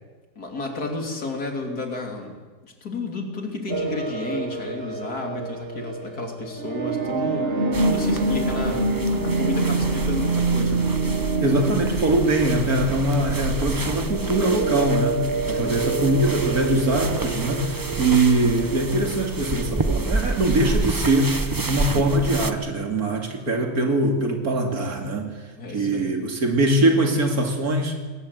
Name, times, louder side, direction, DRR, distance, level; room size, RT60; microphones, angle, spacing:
voice 1, 0.4-2.4 2.6-9.0 9.2-11.0 15.6-16.0 25.6-26.2, left 2 dB, 85° left, 2 dB, 3.5 m, -32 dB
sound 1, 3.7-21.4, right 3 dB, 45° right, 1.3 m, -27 dB
sound 2, 7.7-22.5, right 2 dB, 20° right, 0.6 m, -29 dB
voice 2, 11.4-21.4 21.7-25.3 25.7-28.0, right 2 dB, 75° right, 3 dB, 3.0 m, -22 dB
20.5 x 19.0 x 8.1 m, 1.3 s
omnidirectional pair, 1.6 m